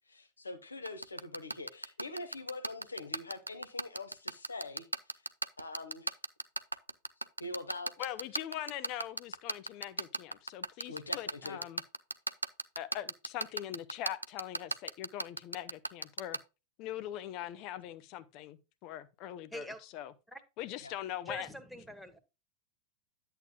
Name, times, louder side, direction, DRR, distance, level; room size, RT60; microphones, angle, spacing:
voice 1, 0.0-4.9 5.1-5.2 5.6-6.2 7.4-8.1 10.0-10.1 10.9-11.6 20.8-20.9, left 2 dB, 75° left, 1.7 m, -44 dB
sound 1, 0.9-16.4, right 2 dB, 85° right, 0.5 m, -34 dB
voice 2, 8.0-11.8 12.8-16.4 16.8-19.7 19.9-20.1 20.6-21.5, left 12 dB, 40° left, 1.0 m, -42 dB
voice 3, 21.3-22.2, equal, ahead, 1.7 m, -44 dB
10.5 x 8.1 x 2.4 m
figure-of-eight pair, 90°, 0 cm